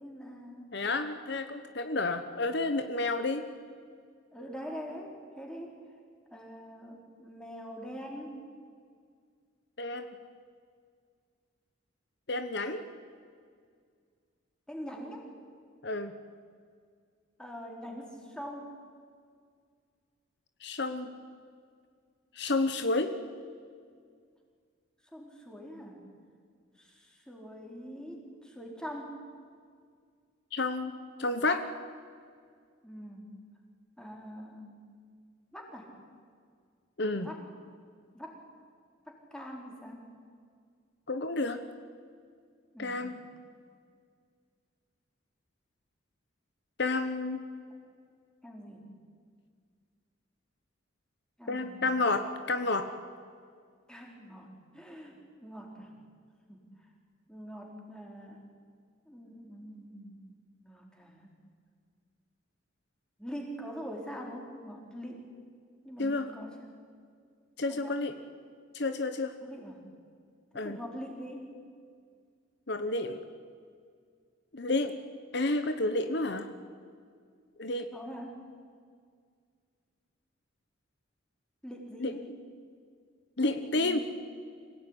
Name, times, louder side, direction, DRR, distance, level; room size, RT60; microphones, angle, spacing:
voice 1, 0.0-0.7 4.3-5.8 6.3-8.4 14.7-15.2 17.4-18.7 25.1-26.0 26.8-29.1 32.8-33.3 34.0-34.8 35.5-35.9 37.1-37.4 38.1-38.4 39.1-40.0 42.7-43.1 48.4-48.9 51.4-51.9 53.9-55.1 55.4-55.9 56.5-56.6 57.3-58.4 59.1-60.3 60.6-61.3 63.2-65.3 65.8-66.7 67.7-68.0 69.4-69.8 70.5-71.5 77.9-78.3 81.6-82.3 83.6-84.0, equal, 5° left, 0 dB, 4.1 m, -43 dB
voice 2, 0.7-3.5 9.8-10.1 12.3-12.8 15.8-16.1 20.6-21.1 22.3-23.1 30.5-30.9 31.2-31.6 37.0-37.3 41.1-41.6 42.8-43.2 46.8-47.4 51.5-52.9 66.0-66.3 67.6-68.1 68.7-69.3 70.5-70.8 72.7-73.2 74.5-74.9 75.3-76.5 77.6-77.9 82.0-82.3 83.4-84.0, left 2 dB, 60° left, 8 dB, 1.1 m, -30 dB
25.5 x 17.0 x 10.0 m, 2.1 s
head